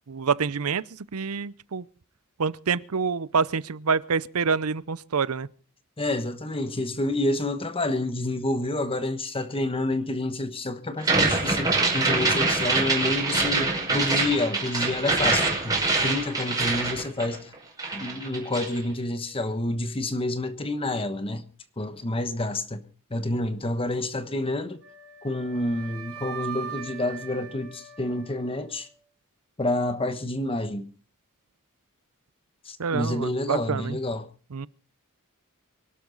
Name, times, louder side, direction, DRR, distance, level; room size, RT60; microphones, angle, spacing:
voice 1, 0.1-1.8 2.4-5.5 32.8-34.0 34.5-34.7, right 5 dB, 85° right, 0.7 m, -27 dB
voice 2, 6.0-17.5 17.9-21.4 21.8-22.8 23.1-24.8 25.2-28.9 29.6-30.9 32.6-34.3, left 2 dB, 25° left, 1.2 m, -28 dB
sound 1, 11.0-17.5 17.8-18.8, right 3 dB, 15° right, 5.3 m, -25 dB
Wind instrument woodwind instrument, 24.8-28.9, right 7 dB, 70° right, 3.2 m, -40 dB
24.0 x 12.0 x 4.0 m
head